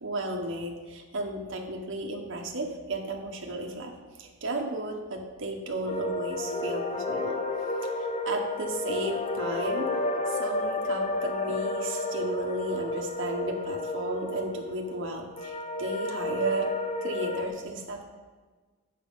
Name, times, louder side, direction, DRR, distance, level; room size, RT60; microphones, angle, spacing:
voice 1, 0.0-3.9 4.2-7.4 7.8-9.9 10.3-16.7 17.0-18.0, right 2 dB, 55° right, 1 dB, 0.9 m, -34 dB
sound 1, 5.9-17.5, left 2 dB, 30° left, 0.5 m, -31 dB
7.3 x 6.0 x 5.2 m, 1.4 s
head